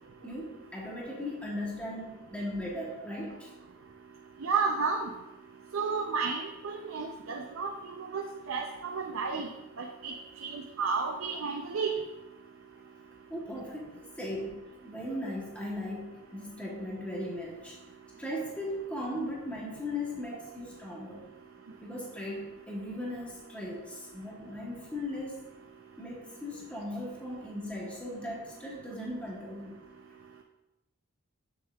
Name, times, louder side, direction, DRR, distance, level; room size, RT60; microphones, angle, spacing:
voice 1, 0.2-3.5 13.3-13.9 14.2-17.8 18.2-21.3 21.8-25.4 26.0-29.8, left 1 dB, 5° left, -4 dB, 1.0 m, -38 dB
voice 2, 4.4-5.1 5.7-9.5 9.8-11.9, right 5 dB, 65° right, 3 dB, 0.5 m, -32 dB
7.8 x 6.6 x 2.3 m, 1.1 s
head